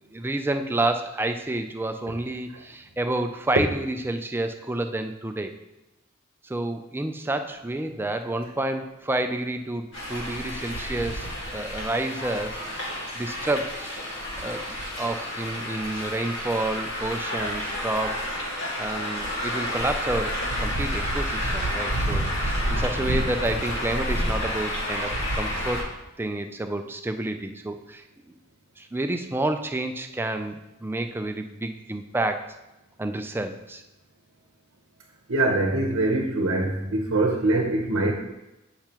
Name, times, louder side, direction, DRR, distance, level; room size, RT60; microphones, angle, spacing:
voice 1, 0.1-5.5 6.4-11.3 11.5-12.6 13.2-14.0 14.4-18.2 18.8-25.9 26.2-28.0 28.8-32.5 33.0-33.8, right 2 dB, 10° right, 6 dB, 0.4 m, -29 dB
sound 1, 9.9-25.8, equal, 60° left, 2.0 m, -29 dB
voice 2, 35.3-38.1, right 2 dB, 75° right, 2 dB, 0.8 m, -23 dB
8.6 x 5.7 x 3.0 m, 0.96 s
head